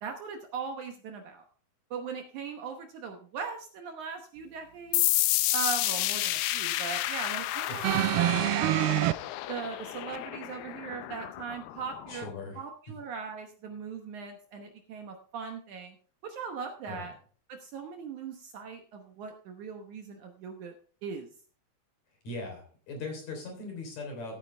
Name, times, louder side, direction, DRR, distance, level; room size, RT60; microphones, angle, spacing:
voice 1, 0.0-1.4 1.9-5.0 5.5-9.1 9.5-12.3 12.6-16.0 16.2-17.1 17.5-20.8 21.0-21.3, right 6 dB, 65° right, 4 dB, 2.2 m, -39 dB
sound 1, 4.9-12.3, left 16 dB, 80° left, 2.2 m, -31 dB
voice 2, 7.7-8.4 12.1-12.6 16.9-17.1 22.2-24.4, left 2 dB, 50° left, 2 dB, 4.7 m, -39 dB
sound 2, 7.8-9.1 10.1-10.2, right 16 dB, 85° right, 2.5 m, -25 dB
15.0 x 9.2 x 3.3 m, 0.43 s
omnidirectional pair, 4.3 m